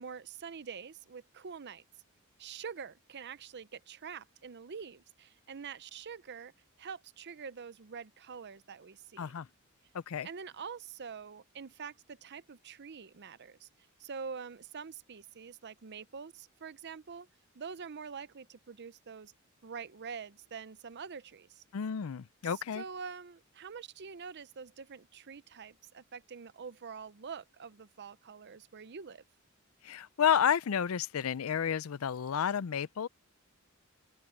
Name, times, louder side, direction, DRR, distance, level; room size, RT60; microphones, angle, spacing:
voice 1, 0.0-1.8 2.4-6.5 6.8-9.4 10.2-13.7 14.0-17.3 17.5-19.3 19.6-21.6 22.4-29.2, right 6 dB, 55° right, 0.7 m, -45 dB
voice 2, 9.2-9.5 9.9-10.3 21.7-22.8 29.8-33.1, left 8 dB, 80° left, 0.5 m, -31 dB
open air
head